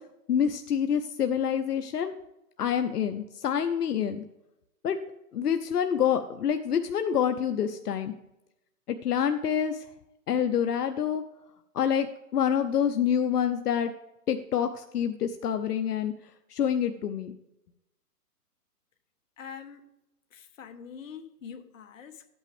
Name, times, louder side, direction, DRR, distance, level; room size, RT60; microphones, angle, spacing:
voice 1, 0.3-2.1 2.6-4.2 4.8-5.0 5.3-8.1 9.0-9.8 10.3-11.2 11.7-13.9 14.3-16.1 16.5-17.3, left 8 dB, 75° left, 7 dB, 0.9 m, -27 dB
voice 2, 19.4-19.8 20.3-22.2, left 7 dB, 55° left, 7 dB, 1.2 m, -44 dB
12.5 x 8.9 x 3.4 m, 0.90 s
hypercardioid pair, 165°, 47 cm